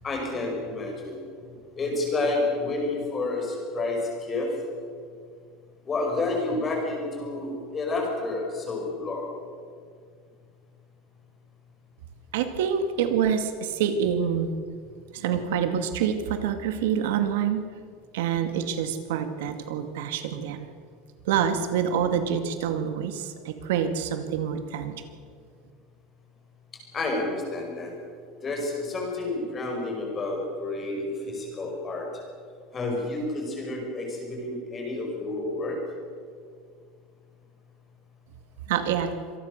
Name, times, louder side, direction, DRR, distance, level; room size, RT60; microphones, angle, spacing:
voice 1, 0.0-1.2 1.8-4.5 5.8-9.3 26.9-27.9 28.4-32.1 32.7-35.8, left 2 dB, 15° left, 1 dB, 5.3 m, -29 dB
voice 2, 12.3-14.6 15.1-17.7 18.1-20.7 21.2-25.1 38.7-39.1, right 8 dB, 80° right, 8 dB, 2.1 m, -26 dB
26.0 x 19.5 x 6.6 m, 2.1 s
supercardioid pair, 175°, 0 cm